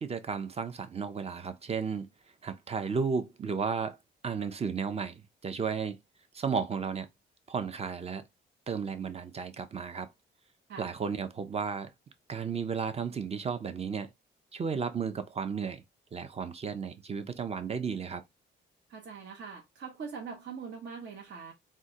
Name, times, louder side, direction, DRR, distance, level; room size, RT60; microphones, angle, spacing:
voice 1, 0.0-2.1 2.4-4.0 4.2-6.0 6.3-7.1 7.5-8.2 8.7-10.1 10.8-11.9 12.3-14.1 14.5-15.8 16.1-18.2, right 6 dB, 30° right, 0.5 m, -33 dB
voice 2, 18.9-21.5, right 5 dB, 60° right, 0.8 m, -42 dB
3.6 x 2.1 x 2.7 m
cardioid pair, 90°, 20 cm